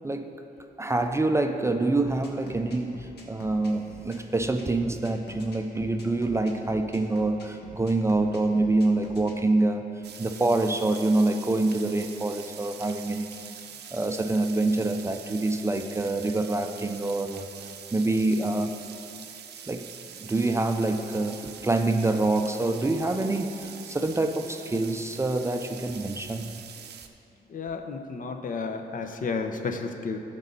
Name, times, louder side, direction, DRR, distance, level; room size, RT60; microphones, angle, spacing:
voice 1, 0.8-9.9 10.2-13.3 13.9-17.5 17.9-18.8 19.7-19.9 20.2-26.5, right 2 dB, 15° right, 6 dB, 0.4 m, -26 dB
sound 1, 2.0-9.3, left 2 dB, 80° left, 1.4 m, -46 dB
sound 2, 10.0-27.1, right 8 dB, 80° right, 0.6 m, -44 dB
voice 2, 27.5-30.2, left 4 dB, 55° left, 6 dB, 0.7 m, -32 dB
14.5 x 5.3 x 4.1 m, 2.8 s
cardioid pair, 105°, 17 cm